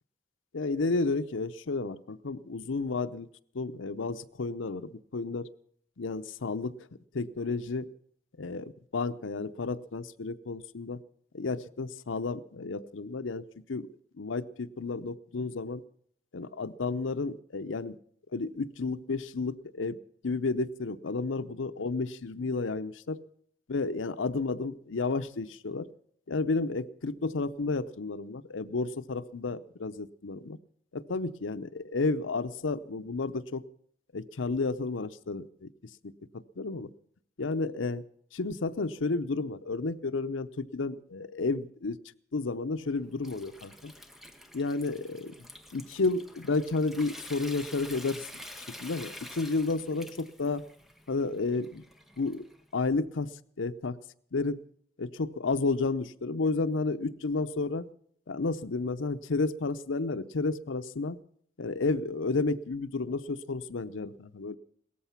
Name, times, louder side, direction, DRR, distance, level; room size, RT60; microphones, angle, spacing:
voice 1, 0.5-3.3 3.5-5.5 6.0-6.7 7.1-7.9 8.4-11.0 11.3-13.4 13.7-13.9 14.2-15.8 16.3-18.0 18.3-20.0 20.2-23.2 23.7-25.9 26.3-30.6 30.9-33.6 34.1-35.7 36.6-36.9 37.4-38.0 38.3-42.0 42.3-43.9 44.5-45.3 45.7-48.3 48.6-50.6 51.1-51.8 52.2-52.4 52.7-53.3 53.6-54.0 54.3-54.6 55.0-57.9 58.3-61.2 61.6-64.6, left 3 dB, 85° left, 12 dB, 0.7 m, -31 dB
Water tap faucet / Sink (filling or washing) / Trickle dribble, 42.8-52.7, left 1 dB, ahead, 1.0 m, -48 dB
17.5 x 14.0 x 5.8 m, 0.63 s
head